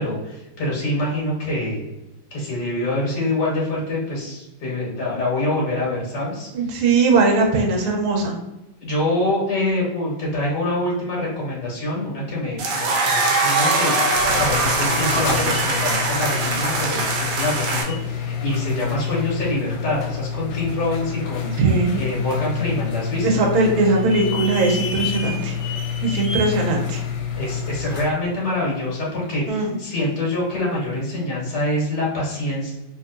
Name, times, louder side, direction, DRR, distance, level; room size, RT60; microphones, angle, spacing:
voice 1, 0.0-1.8 2.3-6.5 8.8-21.5 22.0-23.3 27.4-32.7, left 1 dB, 55° left, -5 dB, 1.8 m, -25 dB
voice 2, 6.5-8.3 21.6-22.0 23.2-25.5 26.0-27.0 29.5-29.8, right 3 dB, 85° right, 0 dB, 1.5 m, -19 dB
sound 1, 12.6-17.8, right 2 dB, 70° right, 1.1 m, -22 dB
sound 2, 13.9-28.2, left 6 dB, 80° left, 0.8 m, -28 dB
3.6 x 2.9 x 2.5 m, 0.95 s
omnidirectional pair, 2.2 m